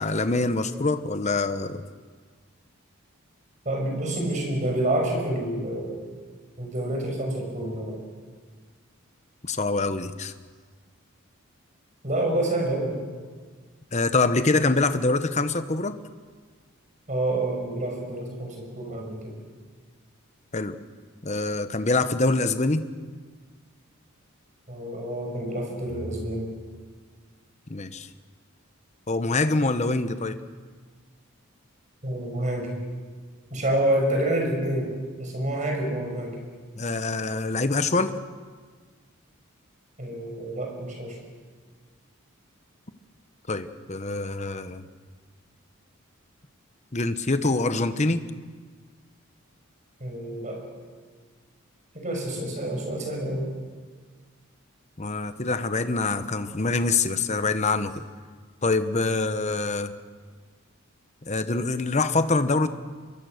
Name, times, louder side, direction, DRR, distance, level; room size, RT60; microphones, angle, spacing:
voice 1, 0.0-1.8 9.4-10.3 13.9-16.0 20.5-20.8 21.2-22.8 27.7-28.1 29.1-30.4 36.8-38.1 43.5-44.9 46.9-48.3 55.0-58.1 58.6-59.9 61.2-62.7, left 3 dB, 35° left, 11 dB, 1.0 m, -25 dB
voice 2, 3.6-6.0 6.6-8.0 12.0-13.1 17.1-19.4 24.7-26.5 32.0-32.8 33.5-34.9 35.2-36.4 40.0-41.2 50.0-50.6 51.9-53.5, right 1 dB, 35° right, 1 dB, 6.0 m, -28 dB
24.5 x 23.0 x 6.6 m, 1.5 s
head